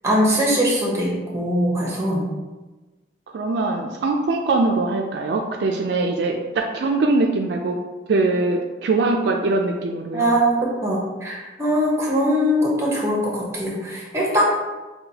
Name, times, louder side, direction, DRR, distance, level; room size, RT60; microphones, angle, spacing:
voice 1, 0.0-2.3 10.1-14.4, equal, 15° right, -3 dB, 0.8 m, -21 dB
voice 2, 3.3-7.8 8.1-10.3, right 3 dB, 65° right, 2 dB, 0.3 m, -22 dB
5.6 x 2.2 x 2.8 m, 1.2 s
head